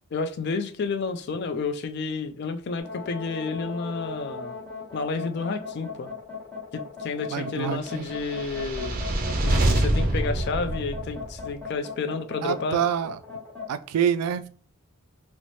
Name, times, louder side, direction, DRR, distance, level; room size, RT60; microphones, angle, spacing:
voice 1, 0.1-4.6 4.9-6.1 6.7-9.0 9.4-12.8, left 4 dB, 50° left, 8 dB, 0.3 m, -30 dB
sound 1, 2.8-13.7, left 4 dB, 5° left, 1.2 m, -39 dB
voice 2, 7.3-8.1 12.4-13.2 13.7-14.5, right 8 dB, 85° right, 13 dB, 0.3 m, -26 dB
sound 2, 8.1-11.5, right 1 dB, 40° right, 0.6 m, -25 dB
4.1 x 2.0 x 3.0 m, 0.43 s
head